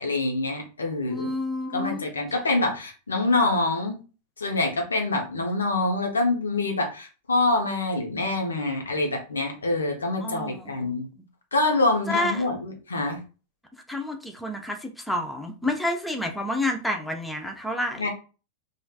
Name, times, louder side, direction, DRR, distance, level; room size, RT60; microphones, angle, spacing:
voice 1, 0.0-1.3 1.7-4.0 4.4-11.1 11.5-13.2 18.0-18.1, left 2 dB, 75° left, 2 dB, 0.7 m, -25 dB
voice 2, 1.1-2.1 10.2-10.9 12.1-12.5 13.9-18.0, left 1 dB, 5° left, 3 dB, 0.5 m, -29 dB
3.2 x 2.4 x 2.2 m, 0.34 s
figure-of-eight pair, 90°, 0 cm